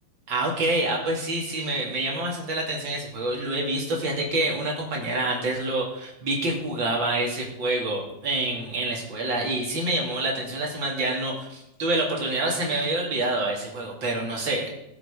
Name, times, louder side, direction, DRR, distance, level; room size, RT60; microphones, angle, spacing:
voice 1, 0.3-14.8, right 2 dB, 35° right, -2 dB, 2.0 m, -27 dB
18.5 x 6.2 x 4.9 m, 0.85 s
omnidirectional pair, 5.3 m